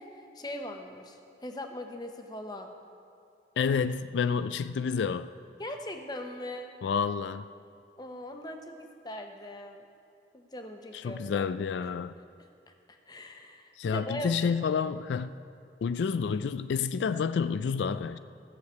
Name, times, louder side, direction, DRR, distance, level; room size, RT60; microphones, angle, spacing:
voice 1, 0.0-2.7 5.6-6.7 8.0-9.8 10.3-11.5 12.7-14.5, left 1 dB, 25° left, 0.9 m, -40 dB
voice 2, 3.6-5.3 6.8-7.5 10.9-12.1 13.8-15.4 15.8-18.2, left 6 dB, 90° left, 0.3 m, -29 dB
14.5 x 6.6 x 8.0 m
head